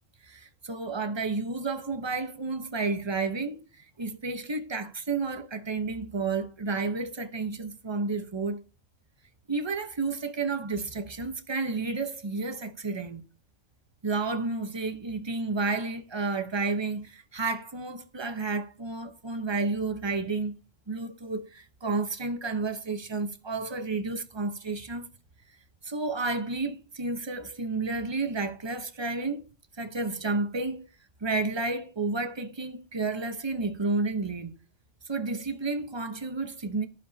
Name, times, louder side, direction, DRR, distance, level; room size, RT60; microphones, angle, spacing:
voice 1, 0.2-8.6 9.5-13.2 14.0-20.6 20.9-25.1 25.8-29.4 29.8-30.9 31.2-34.5 35.1-36.9, right 3 dB, 20° right, 1.0 m, -31 dB
15.0 x 12.0 x 2.8 m
omnidirectional pair, 1.3 m